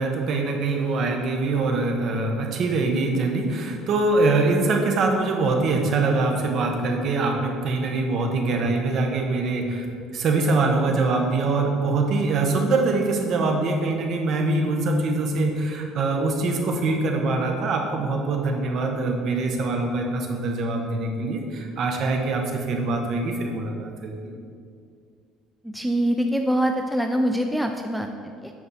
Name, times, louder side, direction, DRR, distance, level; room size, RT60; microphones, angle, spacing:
voice 1, 0.0-9.9 10.1-24.3, right 3 dB, 45° right, 3 dB, 1.0 m, -23 dB
voice 2, 25.6-28.5, equal, ahead, 4 dB, 0.3 m, -24 dB
8.6 x 5.2 x 4.2 m, 2.2 s
cardioid pair, 150°, 0 cm